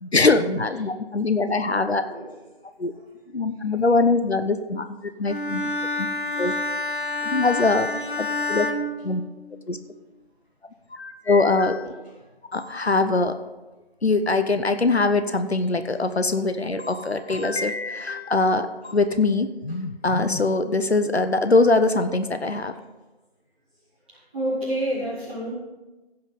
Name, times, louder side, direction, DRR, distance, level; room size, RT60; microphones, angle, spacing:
voice 1, 0.0-2.0 2.8-2.9 3.3-5.7 6.0-6.1 6.4-6.5 7.2-7.9 8.2-8.7 9.0-9.2 9.7-9.8 10.9-11.9 12.5-13.4 14.0-22.7, left 3 dB, 75° left, 9 dB, 0.9 m, -22 dB
Bowed string instrument, 5.3-9.8, left 2 dB, 50° left, 1.1 m, -28 dB
voice 2, 24.1-25.5, right 1 dB, 10° right, -15 dB, 3.3 m, -29 dB
16.0 x 5.7 x 5.3 m, 1.1 s
figure-of-eight pair, 175°, 32 cm